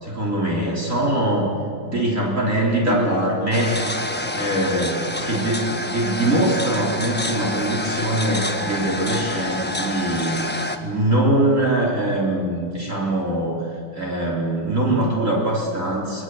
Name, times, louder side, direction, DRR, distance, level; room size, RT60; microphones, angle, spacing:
voice 1, 0.0-1.5 1.8-3.8 4.3-10.5 10.8-13.7 13.9-16.2, right 1 dB, 45° right, -3 dB, 4.0 m, -22 dB
sound 1, 3.5-10.8, left 1 dB, 5° left, 1.2 m, -27 dB
27.5 x 20.0 x 7.8 m, 2.4 s
omnidirectional pair, 1.9 m